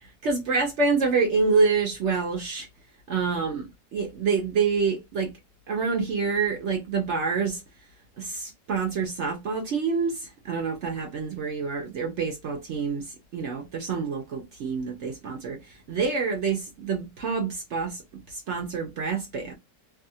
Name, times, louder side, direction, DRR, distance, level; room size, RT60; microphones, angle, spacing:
voice 1, 0.0-2.7 3.1-5.3 5.7-7.6 8.2-18.0 18.3-19.5, right 4 dB, 70° right, 0.6 m, -27 dB
2.6 x 2.4 x 2.6 m
omnidirectional pair, 1.8 m